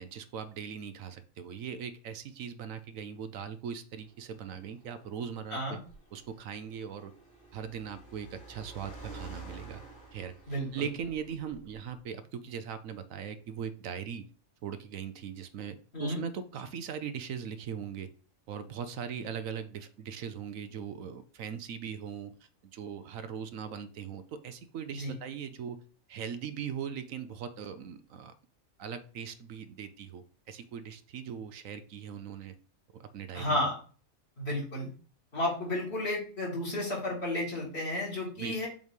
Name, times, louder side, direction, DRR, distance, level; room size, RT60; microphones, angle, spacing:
voice 1, 0.0-5.8 6.1-7.1 7.5-9.8 10.1-14.3 14.6-18.1 18.5-22.4 22.6-25.8 26.1-28.3 28.8-32.5 33.0-33.6 38.4-38.7, right 7 dB, 70° right, 10 dB, 1.0 m, -40 dB
Car, 4.0-12.0, right 2 dB, 65° left, 3.2 m, -50 dB
voice 2, 33.3-33.7 34.4-34.9 35.3-38.7, left 1 dB, 45° left, -3 dB, 2.7 m, -32 dB
7.2 x 3.1 x 5.2 m, 0.42 s
omnidirectional pair, 1.5 m